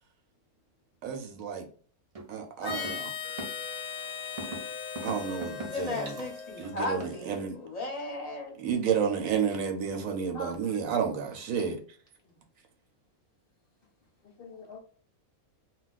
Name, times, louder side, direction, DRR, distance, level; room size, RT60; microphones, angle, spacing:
voice 1, 1.0-1.7 2.3-3.1 5.0-6.1 6.6-7.5 8.6-11.8, right 7 dB, 70° right, 1.0 m, -31 dB
sound 1, 2.2-2.3 2.7-2.9 3.4-3.5 4.4-4.6 5.0-5.7 6.1-7.2, right 2 dB, 50° right, 0.4 m, -38 dB
Harmonica, 2.6-7.4, left 6 dB, 10° left, 0.9 m, -38 dB
voice 2, 5.7-8.5, left 2 dB, 35° left, 0.7 m, -36 dB
voice 3, 10.3-10.7 11.5-11.7 12.2-12.4 14.2-14.8, left 2 dB, 70° left, 0.5 m, -45 dB
2.4 x 2.2 x 3.9 m
omnidirectional pair, 1.5 m